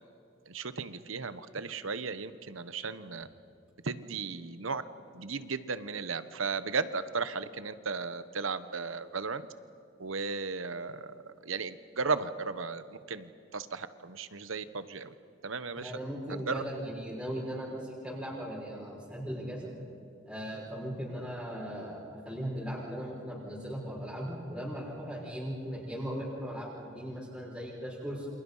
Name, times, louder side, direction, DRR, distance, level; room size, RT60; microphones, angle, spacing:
voice 1, 0.5-3.3 3.8-4.8 5.1-9.4 10.0-15.1 15.4-15.9 16.3-16.6, right 4 dB, 85° right, 13 dB, 1.2 m, -35 dB
voice 2, 15.8-19.7 20.3-28.3, equal, 5° right, -6 dB, 5.8 m, -38 dB
29.0 x 27.5 x 5.7 m, 2.5 s
head